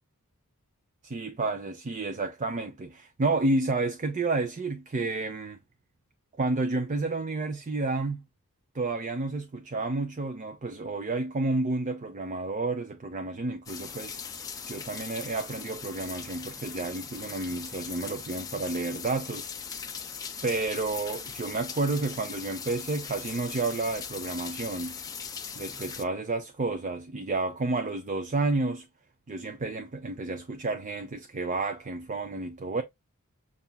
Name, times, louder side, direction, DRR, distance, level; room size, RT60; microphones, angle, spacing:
voice 1, 1.0-5.6 6.4-8.2 8.7-14.2 14.7-19.5 20.4-25.0 25.6-28.9 29.3-32.8, right 3 dB, 35° right, 0.5 m, -30 dB
sound 1, 13.7-26.0, left 6 dB, 15° left, 0.6 m, -40 dB
6.8 x 2.5 x 2.2 m
head